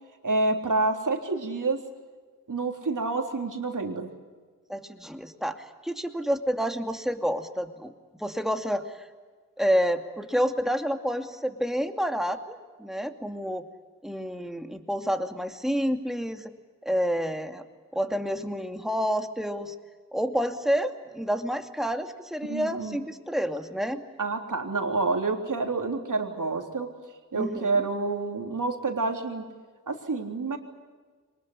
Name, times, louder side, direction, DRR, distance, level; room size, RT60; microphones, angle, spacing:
voice 1, 0.2-1.8 2.5-4.1 22.5-23.0 24.2-26.9 27.3-29.4 29.9-30.6, right 3 dB, 65° right, 4 dB, 3.6 m, -28 dB
voice 2, 4.7-5.6 5.8-7.9 8.2-9.1 9.6-13.6 14.0-16.5 16.8-17.6 17.9-19.7 20.1-24.0 27.3-27.7, equal, ahead, 6 dB, 2.5 m, -29 dB
23.5 x 21.0 x 9.9 m, 1.5 s
cardioid pair, 50°, 34 cm